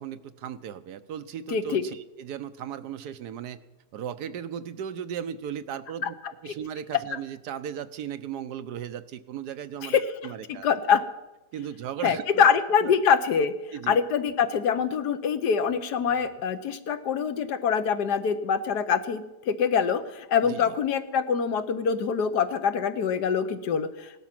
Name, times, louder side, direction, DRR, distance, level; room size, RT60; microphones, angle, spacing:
voice 1, 0.0-3.6 3.9-6.1 6.4-10.7 11.5-12.5 12.8-12.9 13.7-14.0 20.4-20.7, right 9 dB, 85° right, 12 dB, 1.3 m, -36 dB
voice 2, 1.5-1.8 9.8-10.0 10.5-11.0 12.0-13.5 13.9-24.1, left 7 dB, 80° left, 10 dB, 1.5 m, -24 dB
17.5 x 12.0 x 6.0 m, 1.0 s
omnidirectional pair, 1.7 m